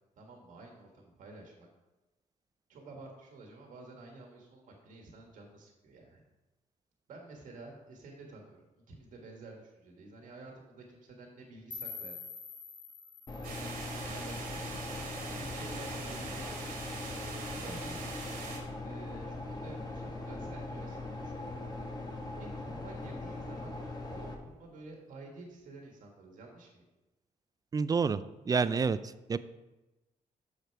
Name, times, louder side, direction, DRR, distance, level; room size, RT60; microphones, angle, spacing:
voice 1, 0.2-1.7 2.7-6.2 7.1-12.2 13.4-14.7 15.3-16.5 17.1-18.1 18.8-21.6 22.4-23.7 24.1-26.8, right 2 dB, 70° right, 1 dB, 1.6 m, -50 dB
sound 1, 11.7-14.7, left 5 dB, 55° left, 0.7 m, -46 dB
sound 2, 13.3-24.3, left 2 dB, 30° left, 1.4 m, -40 dB
sound 3, 13.4-18.6, right 4 dB, 90° right, 1.9 m, -43 dB
voice 2, 27.7-28.2 28.5-29.0 29.3-29.4, right 5 dB, 25° right, 14 dB, 0.3 m, -27 dB
6.6 x 6.6 x 4.6 m, 1.1 s
cardioid pair, 100°, 14 cm